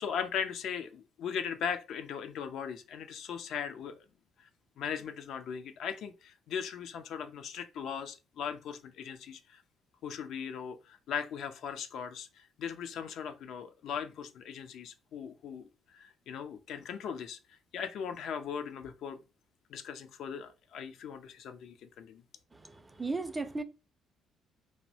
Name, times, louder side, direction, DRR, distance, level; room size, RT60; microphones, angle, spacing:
voice 1, 0.0-4.0 4.4-4.5 4.8-9.6 10.0-15.7 15.9-19.2 19.7-22.2, left 7 dB, 70° left, 0.3 m, -39 dB
voice 2, 22.5-23.6, right 3 dB, 20° right, 0.4 m, -36 dB
2.6 x 2.0 x 2.6 m
hypercardioid pair, 55°, 0 cm